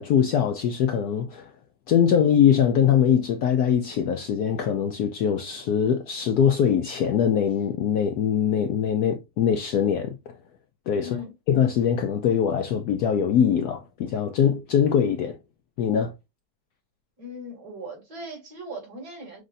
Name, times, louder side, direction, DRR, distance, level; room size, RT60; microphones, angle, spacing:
voice 1, 0.0-1.5 1.9-10.2 10.9-11.2 11.5-15.4 15.8-16.1, left 8 dB, 75° left, 0.9 m, -22 dB
voice 2, 11.0-11.3 17.2-19.4, equal, 50° right, 3.0 m, -38 dB
6.3 x 2.6 x 2.6 m
omnidirectional pair, 2.1 m